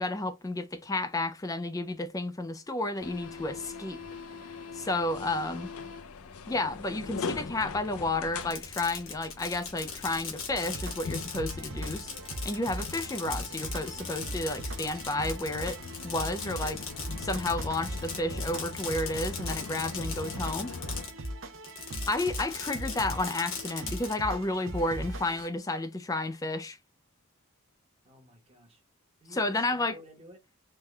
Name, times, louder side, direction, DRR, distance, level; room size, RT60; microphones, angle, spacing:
voice 1, 0.0-4.0 4.7-5.7 6.5-12.1 12.4-15.8 16.0-16.8 17.2-20.7 22.1-26.8 29.3-30.0, left 2 dB, 15° left, 0.3 m, -31 dB
sound 1, 3.0-21.0, left 4 dB, 80° left, 0.5 m, -42 dB
Fireworks, 8.3-21.3 21.6-24.1, left 6 dB, 65° left, 1.1 m, -40 dB
sound 2, 10.5-25.5, right 1 dB, 60° right, 0.6 m, -39 dB
voice 2, 28.0-28.8 29.2-30.4, equal, 25° right, 1.0 m, -52 dB
3.6 x 2.3 x 3.1 m
head